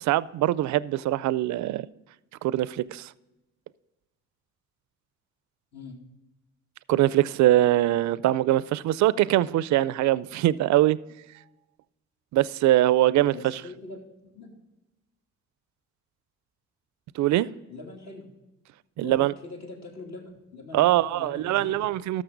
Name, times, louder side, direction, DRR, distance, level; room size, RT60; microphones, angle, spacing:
voice 1, 0.1-1.9 2.4-3.1 6.9-11.0 12.3-13.6 17.2-17.5 19.0-19.3 20.7-22.2, right 14 dB, 70° right, 0.4 m, -22 dB
voice 2, 13.3-14.5 17.7-18.3 19.0-21.8, left 3 dB, 60° left, 3.0 m, -42 dB
13.0 x 6.3 x 3.8 m
cardioid pair, 90°, 30 cm